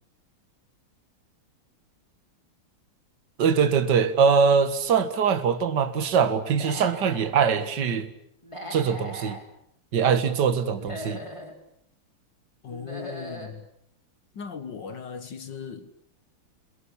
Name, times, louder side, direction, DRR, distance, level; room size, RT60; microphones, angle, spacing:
voice 1, 3.4-8.1 8.7-9.4 9.9-11.2, right 6 dB, 55° right, 2.3 m, -22 dB
Human voice / Animal, 6.5-7.3 8.4-9.4 10.7-11.5 12.7-13.5, equal, 15° left, 4.7 m, -39 dB
voice 2, 12.6-13.7 14.3-15.9, left 6 dB, 60° left, 2.0 m, -38 dB
28.5 x 22.0 x 8.6 m
omnidirectional pair, 2.4 m